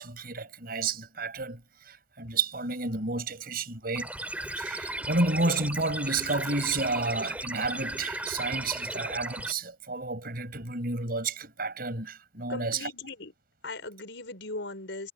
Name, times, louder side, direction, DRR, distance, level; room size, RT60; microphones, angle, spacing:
voice 1, 0.0-4.1 4.6-12.9, right 3 dB, 55° right, 7.1 m, -31 dB
sound 1, 3.9-9.5, right 1 dB, 10° right, 4.7 m, -35 dB
voice 2, 12.5-13.3 13.6-15.1, left 2 dB, 75° left, 5.3 m, -38 dB
head